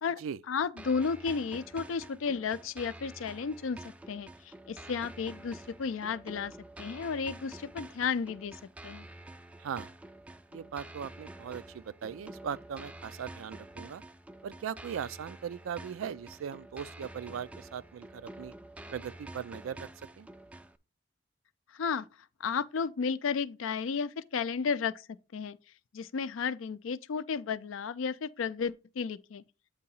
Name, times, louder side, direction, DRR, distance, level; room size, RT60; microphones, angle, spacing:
voice 1, 0.5-6.5 6.8-8.6 8.8-9.1 21.7-22.1 22.4-25.6 25.9-29.4, left 5 dB, 75° left, 0.4 m, -33 dB
sound 1, 0.8-20.8, right 1 dB, 5° right, 0.3 m, -48 dB
voice 2, 9.6-9.9 10.5-14.0 14.4-18.5 18.9-20.3, right 8 dB, 80° right, 0.3 m, -39 dB
8.1 x 2.8 x 5.4 m
head